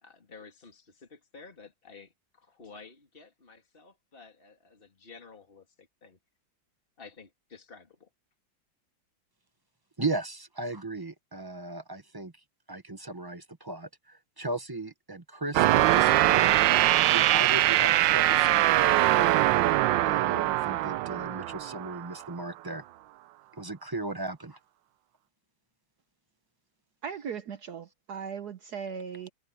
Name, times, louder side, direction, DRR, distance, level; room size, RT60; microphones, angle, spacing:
voice 1, 0.0-6.2 7.0-8.1, left 4 dB, 30° left, 2.9 m, -52 dB
voice 2, 10.0-12.3 12.7-19.4 20.0-22.8 23.6-24.6, right 2 dB, 20° right, 0.7 m, -37 dB
sound 1, 15.5-22.1, right 15 dB, 80° right, 1.3 m, -22 dB
voice 3, 27.0-29.3, right 7 dB, 60° right, 1.4 m, -38 dB
omnidirectional pair, 2.1 m